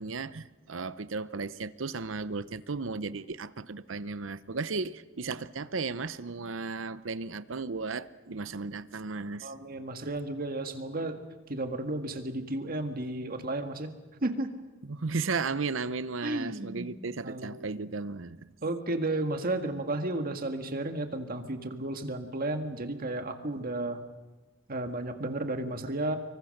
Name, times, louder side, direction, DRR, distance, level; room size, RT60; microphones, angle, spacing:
voice 1, 0.0-9.5 14.8-18.5, right 4 dB, 75° right, 15 dB, 0.8 m, -35 dB
voice 2, 9.4-11.2 11.5-13.9 14.2-14.5 16.2-16.9 17.2-17.7 18.6-24.0 24.7-26.2, right 2 dB, 50° right, 6 dB, 1.8 m, -33 dB
25.5 x 23.5 x 6.6 m, 1.2 s
head